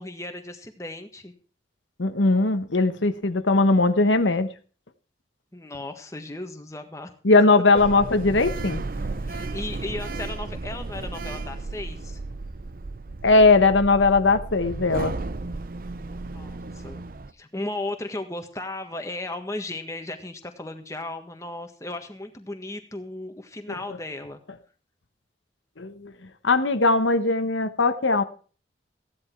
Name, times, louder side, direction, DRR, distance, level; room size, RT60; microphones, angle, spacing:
voice 1, 0.0-1.3 5.5-7.1 8.9-12.2 16.3-17.0 17.3-24.4, left 2 dB, 15° left, 5 dB, 1.6 m, -35 dB
voice 2, 2.0-4.5 7.2-8.8 13.2-15.1 25.8-26.1 26.4-28.2, left 3 dB, 90° left, 10 dB, 1.2 m, -19 dB
Sliding door, 7.8-17.3, right 3 dB, 50° right, 0.7 m, -34 dB
15.5 x 10.5 x 4.6 m, 0.40 s
head